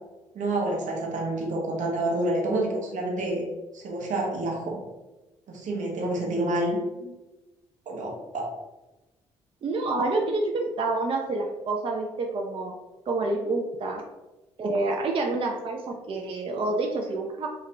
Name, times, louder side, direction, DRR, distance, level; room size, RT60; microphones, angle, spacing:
voice 1, 0.3-3.4 3.7-4.8 5.5-6.8 7.9-8.5, right 1 dB, 55° right, -2 dB, 0.8 m, -28 dB
voice 2, 9.6-12.7 13.1-14.0 14.6-17.5, right 2 dB, 35° right, 1 dB, 0.4 m, -28 dB
2.4 x 2.1 x 2.9 m, 1.1 s
hypercardioid pair, 50°, 15 cm